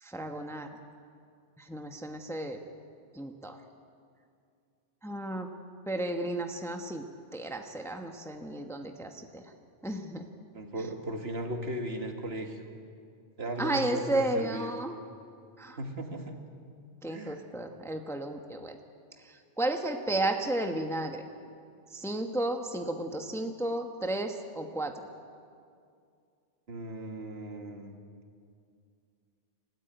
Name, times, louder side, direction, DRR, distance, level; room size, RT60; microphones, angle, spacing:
voice 1, 0.0-0.7 1.6-2.6 3.1-3.6 5.0-5.5 5.9-7.1 7.3-9.4 9.8-10.3 13.6-15.0 15.6-15.8 17.0-18.8 19.2-21.2 21.9-25.0, right 1 dB, ahead, 4 dB, 1.2 m, -33 dB
voice 2, 10.5-12.6 13.4-14.7 15.8-16.4 17.1-17.4 26.7-28.0, right 1 dB, 60° right, 3 dB, 2.2 m, -37 dB
29.0 x 13.0 x 9.1 m, 2.3 s
omnidirectional pair, 1.2 m